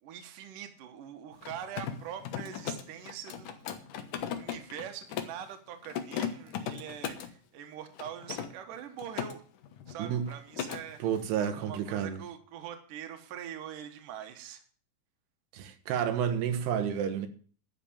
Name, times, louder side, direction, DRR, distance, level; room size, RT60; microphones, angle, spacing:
voice 1, 0.0-3.7 4.3-9.4 9.9-11.0 11.5-14.6, right 9 dB, 65° right, 2.7 m, -43 dB
Mechanisms, 1.3-5.4 5.8-7.3 8.0-9.3 9.6-10.0 10.3-10.8, left 9 dB, 65° left, 2.3 m, -37 dB
voice 2, 11.0-12.2 15.5-17.3, right 8 dB, 90° right, 3.2 m, -30 dB
12.0 x 6.0 x 8.6 m
omnidirectional pair, 4.6 m